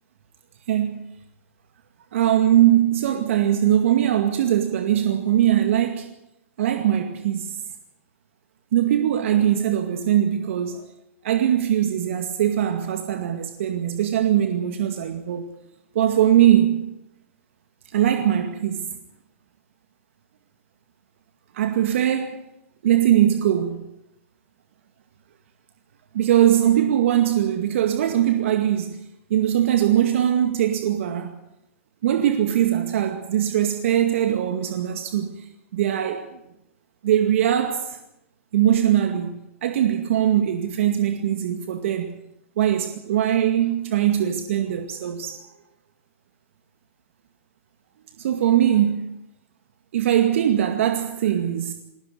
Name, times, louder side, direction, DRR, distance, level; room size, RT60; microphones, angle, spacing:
voice 1, 0.7-1.0 2.1-6.1 6.6-7.6 8.7-10.9 11.2-15.5 15.9-16.9 17.9-18.9 21.5-22.4 22.8-23.8 26.1-29.0 29.3-31.4 32.0-35.4 35.7-36.4 37.0-38.0 38.5-42.1 42.6-45.4 48.2-49.1 49.9-51.7, right 11 dB, 65° right, 2.1 m, -21 dB
20.5 x 17.0 x 9.4 m
hypercardioid pair, 120°, 8 cm